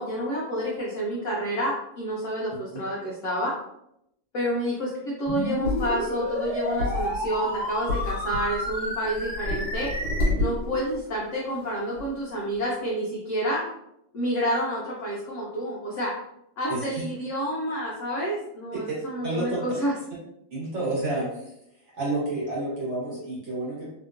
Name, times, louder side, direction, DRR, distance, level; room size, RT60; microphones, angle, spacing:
voice 1, 0.0-3.5 4.3-9.9 10.4-13.6 14.1-16.1 16.6-19.9, equal, 70° left, -5 dB, 0.7 m, -29 dB
sound 1, 5.3-10.3, left 1 dB, 5° left, 1.0 m, -31 dB
sound 2, 5.3-11.1 11.6-11.7 12.0-12.1, left 2 dB, 70° right, 1.9 m, -30 dB
voice 2, 16.7-17.0 18.9-19.0 19.2-19.8 20.5-21.5 21.9-23.9, right 2 dB, 45° right, -7 dB, 1.2 m, -30 dB
3.4 x 2.7 x 2.5 m, 0.79 s
omnidirectional pair, 2.1 m